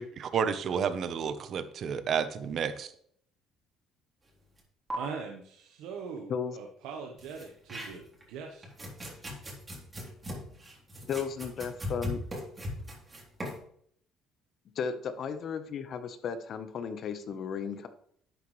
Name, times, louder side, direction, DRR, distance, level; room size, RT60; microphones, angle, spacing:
voice 1, 0.0-2.9, right 7 dB, 50° right, 11 dB, 1.0 m, -31 dB
sound 1, 4.6-4.7 4.9-5.0 7.2-8.2 8.6-13.6, left 1 dB, 20° right, 3.6 m, -39 dB
voice 2, 4.9-8.6, right 5 dB, 85° right, 2 dB, 1.3 m, -41 dB
voice 3, 11.1-12.2 14.7-17.9, left 6 dB, 50° left, 10 dB, 1.2 m, -34 dB
11.5 x 8.1 x 3.3 m, 0.64 s
cardioid pair, 110°, 0 cm